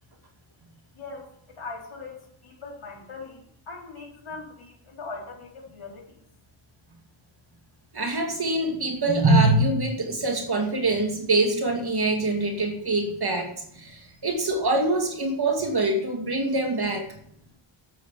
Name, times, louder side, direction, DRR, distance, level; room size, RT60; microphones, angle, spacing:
voice 1, 0.9-6.2 17.2-17.6, left 3 dB, 75° left, -1 dB, 4.3 m, -41 dB
voice 2, 7.9-17.2, right 2 dB, 50° right, 2 dB, 2.5 m, -24 dB
12.0 x 8.6 x 7.5 m, 0.69 s
wide cardioid pair, 105°, 50 cm